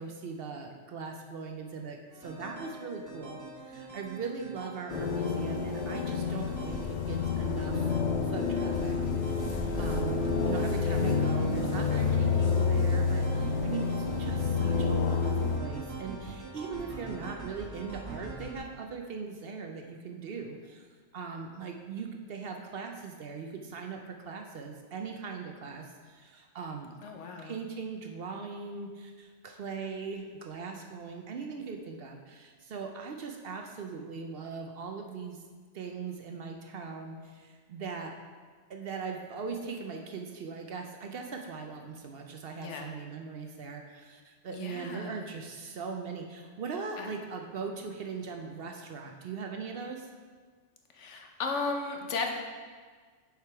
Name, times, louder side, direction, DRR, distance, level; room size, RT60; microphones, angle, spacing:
voice 1, 0.0-7.9 8.2-9.0 9.3-10.2 10.4-20.9 21.1-26.9 27.4-35.4 35.7-38.2 38.7-50.1, right 5 dB, 60° right, 3 dB, 0.8 m, -40 dB
sound 1, 2.1-18.6, right 3 dB, 15° right, 1.2 m, -43 dB
sound 2, 4.9-15.6, left 5 dB, 50° left, 0.6 m, -29 dB
voice 2, 9.5-10.0 10.8-11.0 27.0-27.6 42.6-42.9 44.5-45.3 47.0-47.1 50.9-52.3, left 4 dB, 75° left, 3 dB, 1.1 m, -36 dB
6.7 x 4.9 x 4.6 m, 1.5 s
omnidirectional pair, 1.2 m